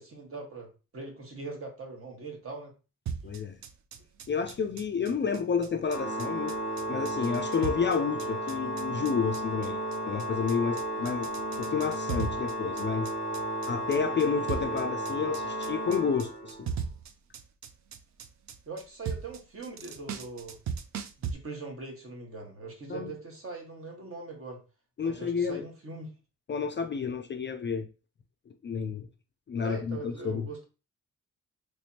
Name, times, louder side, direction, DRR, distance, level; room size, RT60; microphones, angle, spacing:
voice 1, 0.0-2.7 18.7-20.6 21.2-24.6 25.0-26.1 29.6-30.6, right 3 dB, 40° right, 1.3 m, -41 dB
sound 1, 3.1-21.3, right 7 dB, 60° right, 0.5 m, -38 dB
voice 2, 3.2-3.6 4.3-6.5 6.9-9.8 10.1-11.3 11.6-13.1 13.7-16.7 22.9-23.1 25.0-25.6 26.5-27.9 28.6-29.1 29.5-30.5, left 6 dB, 35° left, 0.4 m, -30 dB
Organ, 5.8-16.7, right 1 dB, 75° right, 1.8 m, -34 dB
3.4 x 3.2 x 2.7 m
cardioid pair, 120°, 33 cm